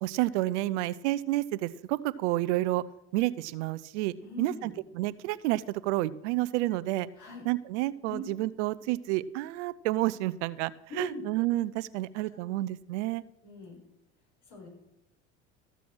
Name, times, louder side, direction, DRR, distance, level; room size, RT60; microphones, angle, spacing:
voice 1, 0.0-2.8 3.1-7.1 7.4-10.7 11.0-13.2, right 17 dB, 75° right, 18 dB, 0.6 m, -30 dB
voice 2, 4.2-4.8 7.2-7.5 8.1-8.2 10.9-11.3 12.2-12.5 13.4-13.8 14.5-14.7, left 3 dB, 55° left, 1 dB, 5.4 m, -42 dB
14.0 x 6.9 x 6.1 m, 0.92 s
hypercardioid pair, 80°, 35 cm